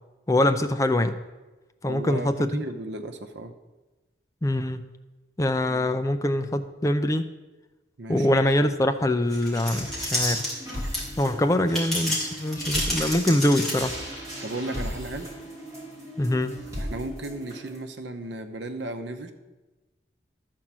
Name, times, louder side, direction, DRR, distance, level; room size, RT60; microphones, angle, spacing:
voice 1, 0.3-1.2 1.8-2.6 4.4-4.9 5.4-7.3 8.1-10.5 11.2-14.0 16.2-16.6, left 1 dB, 15° left, 9 dB, 0.4 m, -24 dB
voice 2, 1.9-3.5 5.7-5.9 8.0-8.4 14.4-15.3 16.8-19.3, right 2 dB, 75° right, 7 dB, 0.9 m, -35 dB
sound 1, 9.3-11.2 11.7-14.1, left 1 dB, ahead, 2.6 m, -29 dB
sound 2, 9.8-17.8, equal, 15° right, 3.0 m, -37 dB
12.0 x 4.6 x 7.4 m, 1.1 s
head